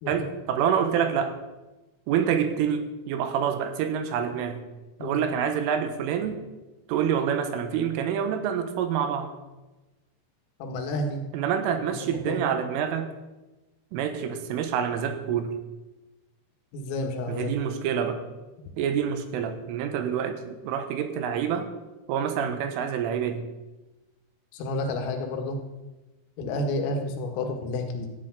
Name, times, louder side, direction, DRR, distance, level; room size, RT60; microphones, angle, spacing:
voice 1, 0.1-1.3 2.1-4.6 5.0-6.3 6.9-9.3 11.3-13.1 13.9-15.5 17.3-18.2 18.8-21.7 22.1-23.5, right 8 dB, 75° right, 8 dB, 3.7 m, -27 dB
voice 2, 10.6-11.3 11.8-11.9 12.3-12.4 16.7-17.8 24.5-25.6 26.4-28.1, left 2 dB, 80° left, 4 dB, 4.3 m, -30 dB
14.5 x 8.3 x 8.9 m, 1.1 s
omnidirectional pair, 5.9 m